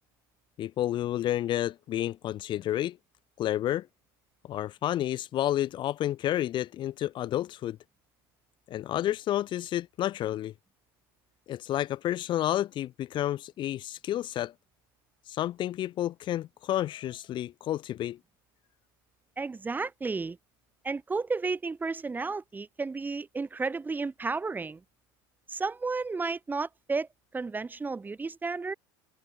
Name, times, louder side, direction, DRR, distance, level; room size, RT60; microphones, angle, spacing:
voice 1, 0.6-3.0 3.4-3.9 4.5-7.8 8.7-10.5 11.5-14.5 15.3-18.2, left 13 dB, 45° left, 1.8 m, -30 dB
voice 2, 19.4-20.4 20.8-24.8 25.5-28.7, right 4 dB, 15° right, 3.4 m, -32 dB
supercardioid pair, 110°, 11 cm